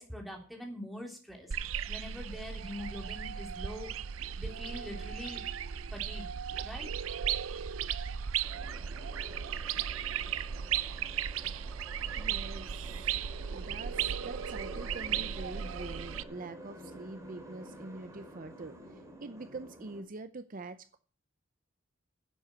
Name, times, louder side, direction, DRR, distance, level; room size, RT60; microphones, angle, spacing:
voice 1, 0.0-1.5 1.9-3.9 4.4-5.4 5.9-6.3 6.6-6.9, equal, ahead, 1 dB, 3.1 m, -43 dB
sound 1, 1.5-16.2, right 8 dB, 85° right, 0.6 m, -36 dB
sound 2, 8.4-20.0, equal, 15° right, 2.9 m, -50 dB
voice 2, 12.1-13.2 13.5-21.0, right 3 dB, 45° right, 11 dB, 0.6 m, -45 dB
11.0 x 7.6 x 8.0 m, 0.40 s
head